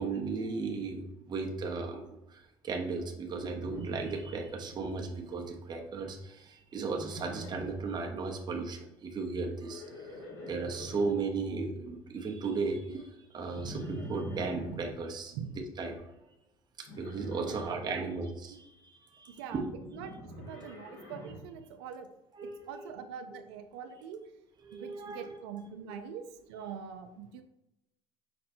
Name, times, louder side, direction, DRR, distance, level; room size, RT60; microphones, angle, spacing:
voice 1, 0.0-15.3 15.8-16.1 16.8-19.7 22.3-22.9 24.7-25.3 25.9-26.1, right 4 dB, 35° right, 1 dB, 0.7 m, -36 dB
Livestock farm animals working animals, 3.5-4.8 5.1-5.6 6.9-7.9 9.5-11.2 13.5-14.9 16.9-18.0 19.8-21.5, equal, 85° left, 1.2 m, -44 dB
voice 2, 17.4-18.1 19.3-19.6 19.9-22.1 22.4-24.2 24.7-27.4, right 7 dB, 85° right, 8 dB, 0.5 m, -44 dB
5.1 x 2.1 x 4.2 m, 0.90 s
supercardioid pair, 80°, 13 cm